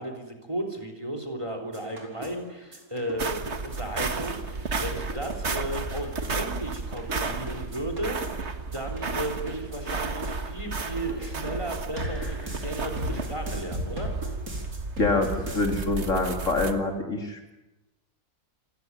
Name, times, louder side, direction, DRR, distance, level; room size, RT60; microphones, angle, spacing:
voice 1, 0.0-14.1, right 1 dB, 20° right, 5 dB, 3.5 m, -35 dB
sound 1, 1.7-15.8, equal, 65° right, 5.0 m, -39 dB
sound 2, 3.2-16.7, right 4 dB, 45° right, 1.8 m, -33 dB
voice 2, 15.0-17.5, left 2 dB, 50° left, 3 dB, 3.4 m, -26 dB
28.0 x 16.5 x 9.7 m, 1.0 s
omnidirectional pair, 1.7 m